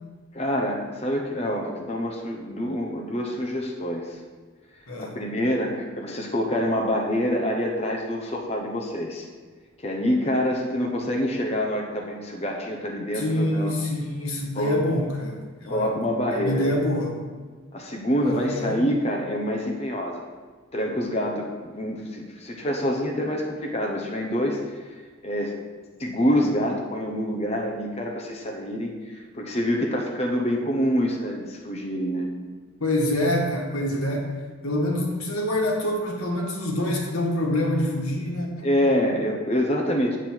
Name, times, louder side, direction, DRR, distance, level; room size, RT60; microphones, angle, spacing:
voice 1, 0.3-4.2 5.0-9.3 9.8-13.7 14.5-14.7 15.7-16.7 17.7-20.2 20.7-25.0 25.2-25.6 26.0-32.3 38.6-40.2, equal, 30° left, 0 dB, 0.9 m, -26 dB
voice 2, 4.9-5.2 13.1-15.9 16.3-17.2 18.2-18.8 32.8-34.3 34.6-38.7, left 1 dB, 85° left, 0 dB, 1.7 m, -26 dB
8.2 x 7.4 x 4.5 m, 1.5 s
head